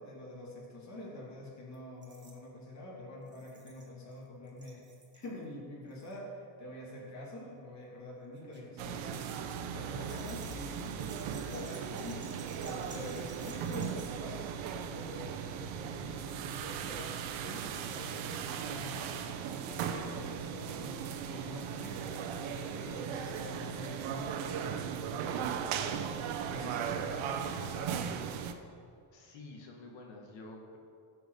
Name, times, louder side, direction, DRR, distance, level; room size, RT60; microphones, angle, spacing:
voice 1, 0.0-4.8 5.1-9.4 9.7-12.2 12.6-19.1 19.7-26.2 26.5-28.3, left 1 dB, 35° left, -5 dB, 2.9 m, -46 dB
sound 1, 1.7-1.8 2.0-2.4 3.3-4.2 4.5-5.3 5.9-6.2 7.1-7.3 8.4-14.1, right 4 dB, 20° right, 1.7 m, -55 dB
sound 2, 8.8-28.5, right 8 dB, 75° right, 1.1 m, -37 dB
voice 2, 29.1-30.8, left 2 dB, 65° left, 1 dB, 2.3 m, -49 dB
15.5 x 6.1 x 6.6 m, 2.3 s
cardioid pair, 140°, 48 cm